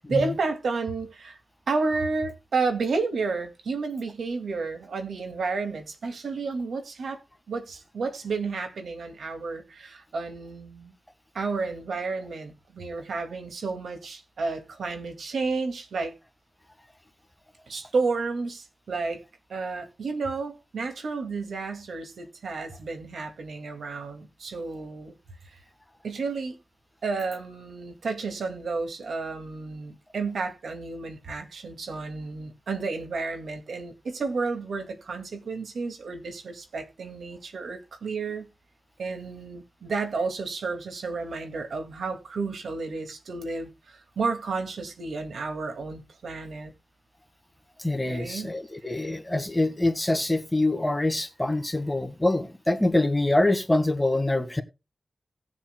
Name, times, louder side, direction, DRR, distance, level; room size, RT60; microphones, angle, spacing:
voice 1, 0.1-1.4 1.7-7.2 7.5-10.9 11.3-16.1 17.7-19.2 19.5-25.1 26.0-26.6 27.0-38.5 39.0-46.7 48.1-48.5, right 4 dB, 90° right, 2.1 m, -31 dB
voice 2, 47.8-54.6, left 2 dB, 15° left, 1.6 m, -25 dB
19.0 x 7.2 x 2.2 m
cardioid pair, 70°, 0 cm